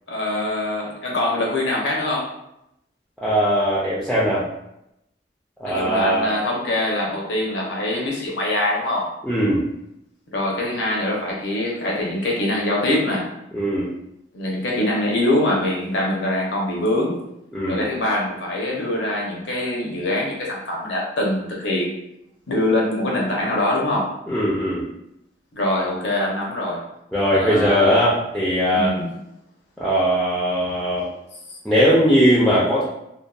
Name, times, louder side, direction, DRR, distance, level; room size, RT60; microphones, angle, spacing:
voice 1, 0.1-2.3 5.6-9.1 10.3-13.3 14.3-17.2 17.7-21.9 22.5-24.1 25.5-26.8 27.3-28.0 28.7-29.1 31.5-31.6, left 1 dB, 85° left, -2 dB, 0.7 m, -23 dB
voice 2, 3.2-4.5 5.6-6.4 9.2-9.6 13.5-13.9 17.5-17.9 24.3-24.8 27.1-29.0 29.8-31.1 31.6-32.8, equal, ahead, -9 dB, 0.4 m, -19 dB
2.6 x 2.2 x 2.3 m, 0.83 s
head